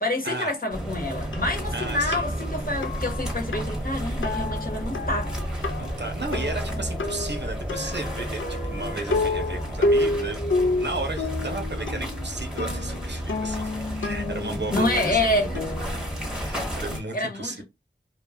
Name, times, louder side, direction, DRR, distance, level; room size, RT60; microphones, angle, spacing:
voice 1, 0.0-5.3 14.7-15.5 17.1-17.6, left 2 dB, 45° left, 1.0 m, -27 dB
sound 1, 0.7-17.0, equal, 5° right, 1.0 m, -32 dB
sound 2, 1.3-16.7, left 2 dB, 75° left, 0.5 m, -30 dB
voice 2, 1.7-2.3 5.8-10.4 10.7-16.0 16.4-17.6, right 2 dB, 60° right, 0.7 m, -34 dB
2.2 x 2.2 x 3.4 m
wide cardioid pair, 40°, 20 cm